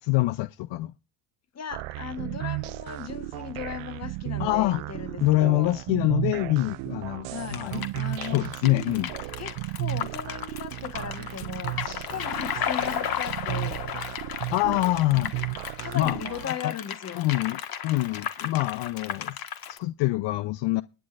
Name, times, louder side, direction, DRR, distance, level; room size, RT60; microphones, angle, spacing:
voice 1, 0.0-0.9 4.4-4.8 5.2-7.8 8.3-9.1 14.5-15.3 15.9-16.7 17.2-19.4 19.7-20.8, left 18 dB, 65° left, 0.6 m, -25 dB
voice 2, 1.5-5.8 7.3-7.6 8.0-8.5 9.4-13.9 15.8-17.3, left 8 dB, 35° left, 1.3 m, -37 dB
sound 1, 1.7-16.5, right 21 dB, 80° right, 0.5 m, -34 dB
sound 2, 7.5-19.8, left 9 dB, 50° left, 1.6 m, -34 dB
20.0 x 10.0 x 2.5 m
cardioid pair, 105°, 46 cm